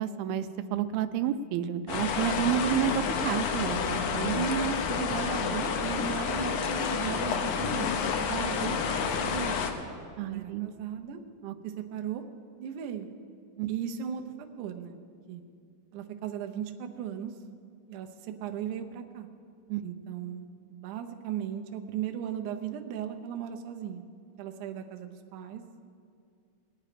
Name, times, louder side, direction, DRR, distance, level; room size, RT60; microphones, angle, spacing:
voice 1, 0.0-4.4 10.2-10.7 11.4-11.6 13.6-13.7 19.7-19.8, right 10 dB, 90° right, 11 dB, 2.5 m, -30 dB
sound 1, 1.9-9.7, left 6 dB, 70° left, 1.9 m, -29 dB
voice 2, 4.3-7.9 8.3-9.6 10.2-11.2 11.6-12.2 12.6-13.1 13.7-15.0 15.3-15.4 15.9-17.3 17.9-19.3 19.8-24.0 24.4-25.6, right 8 dB, 75° right, 5 dB, 1.9 m, -36 dB
19.5 x 9.6 x 5.0 m, 2.4 s
omnidirectional pair, 4.3 m